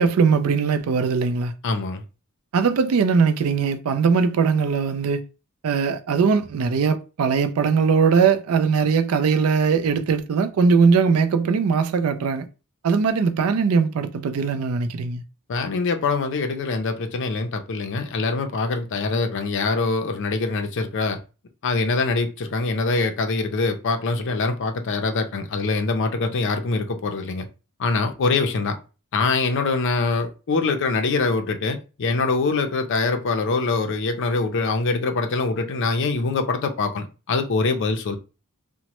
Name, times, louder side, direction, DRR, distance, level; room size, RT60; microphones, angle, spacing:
voice 1, 0.0-1.5 2.5-5.2 5.6-12.5 12.8-15.2, right 5 dB, 70° right, 0.4 m, -20 dB
voice 2, 1.6-2.0 15.5-21.2 21.6-27.5 27.8-28.8 29.1-38.2, left 3 dB, 55° left, 0.5 m, -24 dB
2.9 x 2.1 x 2.9 m
head